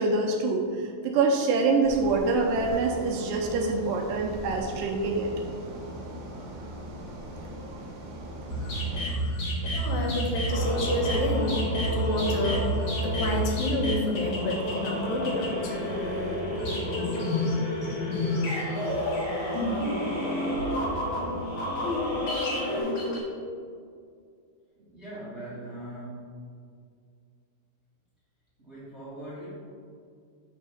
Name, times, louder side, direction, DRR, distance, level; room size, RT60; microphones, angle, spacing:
voice 1, 0.0-5.3, right 3 dB, 80° right, 1 dB, 2.1 m, -25 dB
sound 1, 1.8-9.0, right 1 dB, 60° right, 2.2 m, -40 dB
sound 2, 8.5-23.2, equal, 60° left, 1.3 m, -30 dB
voice 2, 9.7-11.7 11.9-12.7 13.0-15.8, left 1 dB, 80° left, -1 dB, 2.7 m, -29 dB
sound 3, 10.5-22.8, left 1 dB, 40° left, 0.6 m, -33 dB
voice 3, 24.7-26.4 28.6-29.5, right 1 dB, 40° right, -11 dB, 0.9 m, -41 dB
7.5 x 3.6 x 5.6 m, 2.2 s
omnidirectional pair, 4.1 m